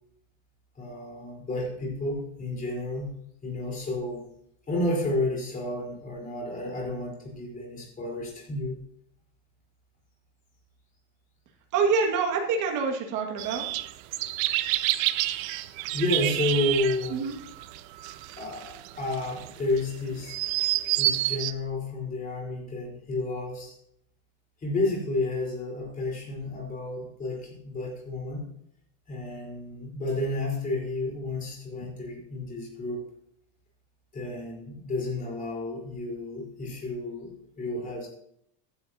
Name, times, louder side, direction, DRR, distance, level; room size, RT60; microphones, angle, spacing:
voice 1, 0.8-3.1 3.4-4.3 4.7-8.8 15.9-17.2 18.4-20.7 21.0-23.7 24.6-28.4 29.1-33.0 34.1-38.1, left 2 dB, 20° left, -3 dB, 4.2 m, -31 dB
voice 2, 11.7-13.7 17.1-17.3, right 5 dB, 50° right, 1 dB, 2.1 m, -26 dB
sound 1, 13.4-21.5, right 16 dB, 85° right, 0.8 m, -29 dB
15.0 x 10.5 x 2.9 m, 0.73 s
cardioid pair, 150°, 40 cm